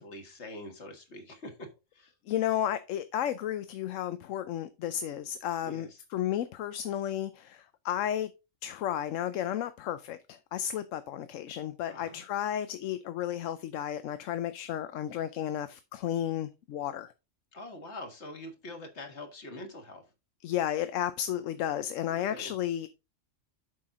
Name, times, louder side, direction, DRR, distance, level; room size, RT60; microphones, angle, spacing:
voice 1, 0.0-1.7 1.9-2.1 5.6-5.9 11.9-12.2 17.5-20.0 22.1-22.5, left 1 dB, 60° left, 1.8 m, -44 dB
voice 2, 2.3-8.3 8.6-17.1 20.4-22.9, left 11 dB, 90° left, 1.0 m, -33 dB
7.6 x 5.7 x 3.7 m
omnidirectional pair, 1.3 m